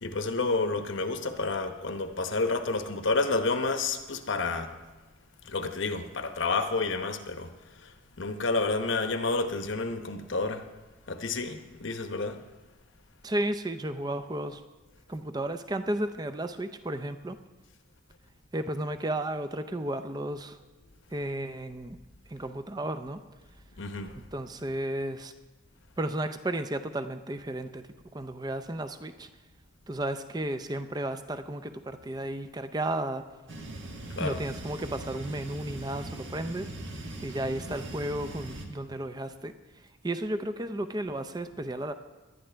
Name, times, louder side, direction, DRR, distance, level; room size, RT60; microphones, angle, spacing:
voice 1, 0.0-4.7 5.4-7.5 7.8-7.9 8.2-10.6 11.1-12.4 23.8-24.2 34.1-34.4, left 3 dB, 65° left, 7 dB, 0.9 m, -30 dB
voice 2, 13.2-14.6 15.1-17.4 18.5-20.6 21.1-22.0 22.3-23.2 24.3-25.3 26.0-27.8 28.1-29.3 29.9-33.2 34.2-36.7 37.2-39.5 40.0-41.9, right 1 dB, 20° right, 10 dB, 0.5 m, -33 dB
sound 1, 33.5-38.7, right 2 dB, 65° right, 1.4 m, -40 dB
18.5 x 11.5 x 3.4 m, 1.2 s
head